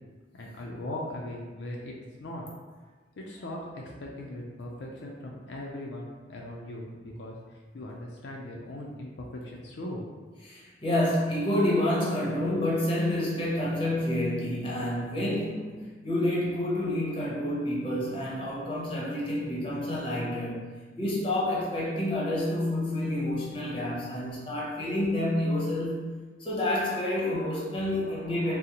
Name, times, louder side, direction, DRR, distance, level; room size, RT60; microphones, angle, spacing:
voice 1, 0.3-2.4 3.2-10.0, left 1 dB, 75° left, -2 dB, 0.4 m, -39 dB
voice 2, 10.4-20.6 21.0-28.6, left 1 dB, 30° left, -5 dB, 0.7 m, -29 dB
3.8 x 2.0 x 2.8 m, 1.4 s
head